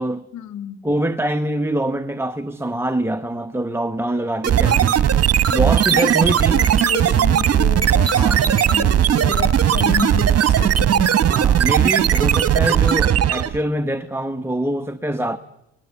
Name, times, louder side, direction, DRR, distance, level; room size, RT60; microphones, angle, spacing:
voice 1, 0.3-0.8 4.6-4.9 5.9-11.2, left 9 dB, 75° left, 1.7 m, -31 dB
voice 2, 0.8-5.0 5.5-6.6 8.1-8.4 11.3-15.4, right 1 dB, 10° right, 1.0 m, -24 dB
sound 1, 4.4-13.6, right 9 dB, 55° right, 1.3 m, -17 dB
30.0 x 20.5 x 8.2 m
cardioid pair, 90°, 30 cm